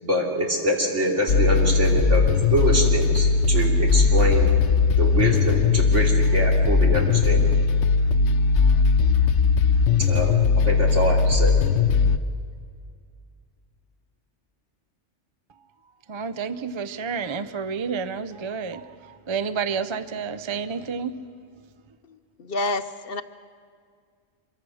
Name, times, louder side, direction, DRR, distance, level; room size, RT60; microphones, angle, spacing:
voice 1, 0.0-4.5 5.0-7.5 10.1-10.4 10.6-11.5, right 1 dB, 75° right, 0 dB, 3.4 m, -25 dB
sound 1, 1.3-12.2, left 5 dB, 80° left, 1.1 m, -19 dB
voice 2, 16.1-21.2, right 6 dB, 30° right, 12 dB, 0.6 m, -30 dB
voice 3, 22.1-23.2, left 2 dB, 55° left, 10 dB, 0.9 m, -29 dB
25.5 x 23.0 x 6.4 m, 2.1 s
omnidirectional pair, 1.2 m